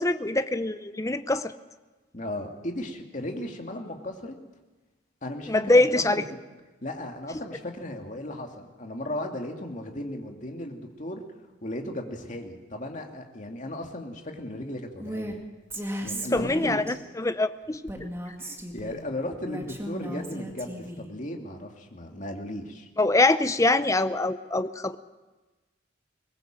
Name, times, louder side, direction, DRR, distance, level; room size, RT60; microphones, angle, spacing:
voice 1, 0.0-1.5 5.5-6.2 16.3-17.8 23.0-25.0, left 2 dB, 15° left, 11 dB, 0.7 m, -24 dB
voice 2, 2.1-4.4 5.2-6.2 6.8-11.2 11.6-15.4 16.0-16.8 18.4-22.9, left 1 dB, 40° left, 3 dB, 2.4 m, -36 dB
Female speech woman speaking, 15.0-15.4 15.7-17.0 17.9-19.0 19.5-21.1, right 1 dB, 15° right, 2.1 m, -36 dB
22.0 x 19.5 x 7.6 m, 1.2 s
head